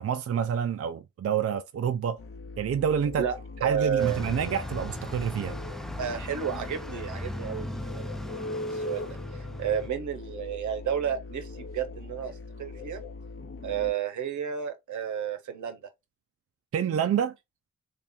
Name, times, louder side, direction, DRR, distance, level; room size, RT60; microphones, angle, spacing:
voice 1, 0.0-2.2 2.6-3.3 3.6-5.6 16.7-17.3, right 8 dB, 50° right, 0.5 m, -28 dB
sound 1, 2.2-13.9, left 3 dB, 45° left, 0.9 m, -40 dB
voice 2, 3.6-4.2 6.0-8.2 8.7-9.1 9.3-12.3 12.6-13.0 13.6-15.8, right 8 dB, 75° right, 0.8 m, -31 dB
Bus, 4.0-9.9, equal, ahead, 0.5 m, -38 dB
3.3 x 2.7 x 3.6 m
supercardioid pair, 40°, 30 cm